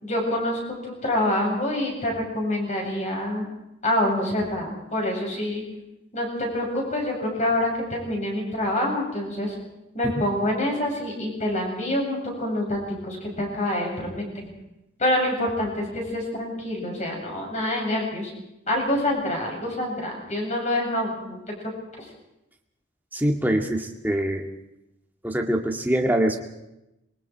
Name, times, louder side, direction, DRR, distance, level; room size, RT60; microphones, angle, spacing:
voice 1, 0.0-3.4 3.8-5.6 6.1-9.6 9.9-14.4 15.0-18.3 18.7-21.4, left 1 dB, 35° left, 0 dB, 7.7 m, -26 dB
voice 2, 23.1-24.4 25.2-26.4, right 1 dB, 10° right, 2 dB, 2.0 m, -24 dB
26.5 x 23.0 x 4.7 m, 0.90 s
head